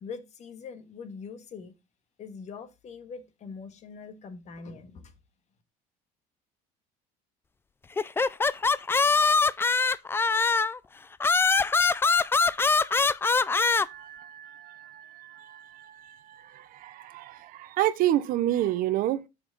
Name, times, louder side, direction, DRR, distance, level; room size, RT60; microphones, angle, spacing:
voice 1, 0.0-1.7 2.2-5.1, left 5 dB, 45° left, 1.7 m, -42 dB
sound 1, 8.0-10.8 11.2-13.9, left 4 dB, 15° left, 0.4 m, -23 dB
voice 2, 13.7-19.2, right 13 dB, 60° right, 0.8 m, -30 dB
6.8 x 6.1 x 3.9 m
supercardioid pair, 110°, 17 cm